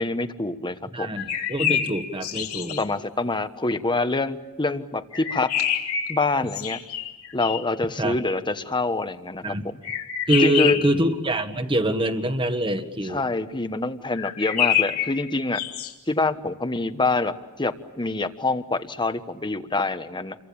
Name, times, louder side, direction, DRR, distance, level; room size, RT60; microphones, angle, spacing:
voice 1, 0.0-1.2 2.8-5.5 6.1-6.8 7.3-9.7 10.4-10.8 13.0-15.6 16.1-20.4, left 3 dB, 20° left, 10 dB, 1.3 m, -26 dB
voice 2, 0.9-2.8 8.0-8.2 9.4-9.7 10.3-13.2, right 1 dB, 25° right, 8 dB, 1.7 m, -25 dB
sound 1, 1.1-2.8 5.1-7.8 9.8-11.0 14.1-15.9, left 10 dB, 85° left, 3.4 m, -27 dB
29.0 x 23.5 x 8.7 m, 1.0 s
head